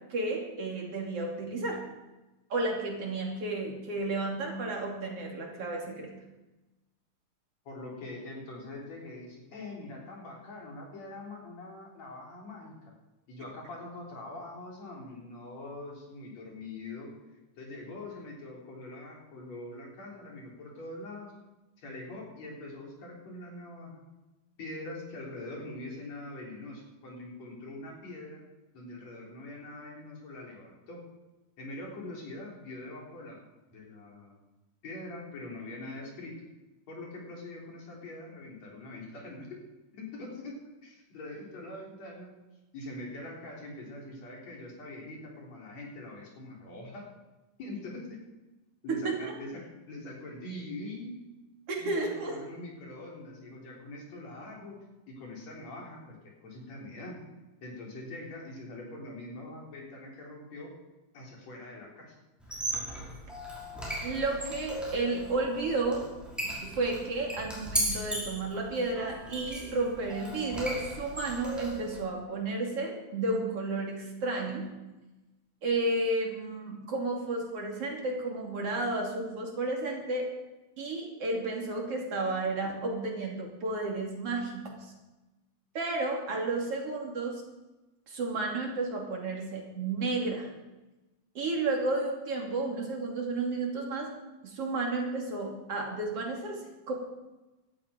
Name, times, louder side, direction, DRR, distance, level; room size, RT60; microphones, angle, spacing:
voice 1, 0.1-1.8 2.5-6.1 48.9-49.3 51.7-52.4 64.0-66.1 66.6-74.7 75.6-80.3 80.8-84.9 85.8-87.4 88.1-90.5 91.4-94.1 94.4-96.9, right 2 dB, 50° right, 0 dB, 3.6 m, -32 dB
voice 2, 7.6-12.9 13.3-17.1 17.6-21.3 21.8-24.0 24.6-28.4 28.7-31.0 31.6-33.4 33.7-34.4 34.8-36.3 36.9-39.6 39.9-40.5 40.8-42.3 42.7-47.1 47.6-48.2 48.8-49.6 49.9-51.1 51.8-54.8 55.1-57.2 57.6-60.7 61.1-62.2, left 2 dB, 60° left, -2 dB, 4.9 m, -43 dB
Squeak, 62.4-72.0, equal, ahead, 5.3 m, -37 dB
17.0 x 13.5 x 5.1 m, 1.1 s
omnidirectional pair, 3.4 m